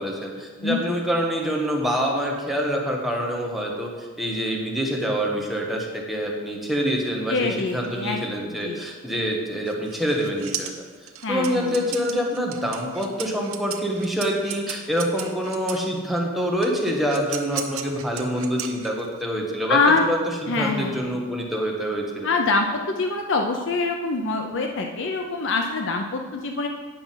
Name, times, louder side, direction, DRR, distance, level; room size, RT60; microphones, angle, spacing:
voice 1, 0.0-10.7 11.3-22.3, equal, ahead, -1 dB, 1.1 m, -26 dB
voice 2, 0.6-1.0 7.3-8.8 11.2-11.8 19.7-20.1 20.5-21.1 22.2-26.7, left 3 dB, 60° left, 3 dB, 0.7 m, -24 dB
sound 1, 9.7-15.9 16.6-19.2, right 9 dB, 85° right, 0.9 m, -35 dB
9.2 x 6.0 x 5.7 m, 1.4 s
head